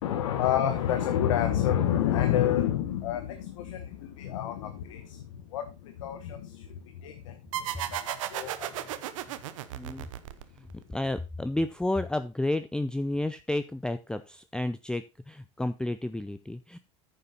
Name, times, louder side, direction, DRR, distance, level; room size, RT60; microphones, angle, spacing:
voice 1, 0.0-9.0, left 10 dB, 80° left, 7 dB, 1.2 m, -29 dB
sound 1, 7.5-10.8, right 12 dB, 80° right, 0.8 m, -35 dB
voice 2, 9.7-10.1 10.6-16.8, left 1 dB, 5° left, 11 dB, 0.5 m, -31 dB
9.5 x 6.9 x 4.0 m, 0.27 s
hypercardioid pair, 90°, 16 cm